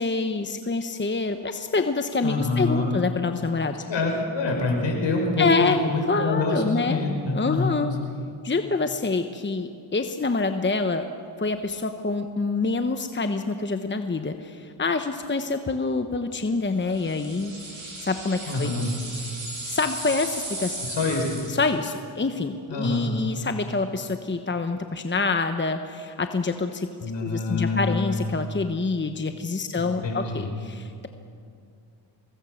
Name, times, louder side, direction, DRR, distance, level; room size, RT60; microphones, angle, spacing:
voice 1, 0.0-3.7 5.4-5.8 6.1-7.0 7.3-7.9 8.4-11.0 11.4-17.5 18.0-18.7 19.7-20.8 21.5-26.9 27.2-31.1, left 3 dB, 25° left, 7 dB, 1.1 m, -26 dB
voice 2, 2.2-2.9 3.9-7.7 18.5-18.9 20.8-21.2 22.7-23.1 27.0-28.1 29.8-30.5, left 3 dB, 65° left, 1 dB, 5.8 m, -26 dB
sound 1, 16.9-21.7, right 2 dB, 40° right, 7.4 m, -36 dB
25.0 x 20.5 x 6.6 m, 2.4 s
cardioid pair, 60°, 47 cm